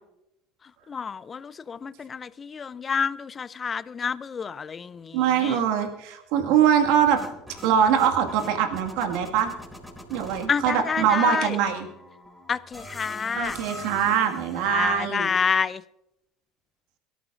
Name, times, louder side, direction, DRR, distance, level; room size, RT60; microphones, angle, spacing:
voice 1, 0.9-5.6 10.5-11.6 12.5-13.6 14.7-15.8, left 6 dB, 30° left, 0.5 m, -28 dB
voice 2, 5.1-7.2 7.6-9.5 10.1-11.9 13.4-15.3, right 8 dB, 70° right, 1.9 m, -22 dB
sound 1, 6.7-15.0, left 1 dB, 5° right, 4.2 m, -44 dB
23.0 x 13.5 x 2.6 m
hypercardioid pair, 70°, 0 cm